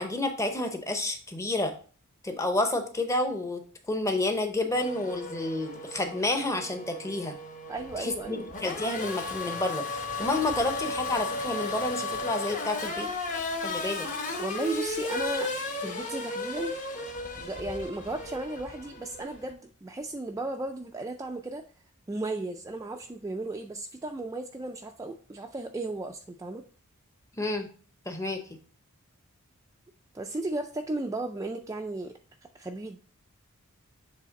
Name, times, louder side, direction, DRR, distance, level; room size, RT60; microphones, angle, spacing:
voice 1, 0.0-1.7 2.2-3.6 3.9-7.4 8.0-13.1 13.6-14.1 27.4-27.7 28.1-28.4, left 2 dB, 15° left, 5 dB, 0.7 m, -30 dB
Race car auto racing / Accelerating revving vroom, 4.7-19.5, left 2 dB, 35° left, 0.9 m, -35 dB
voice 2, 7.7-8.5 14.4-15.5 15.8-16.8 17.4-21.6 22.1-26.6 30.1-32.1 32.5-33.0, right 2 dB, 15° right, 3 dB, 0.3 m, -35 dB
7.4 x 3.3 x 4.0 m, 0.40 s
head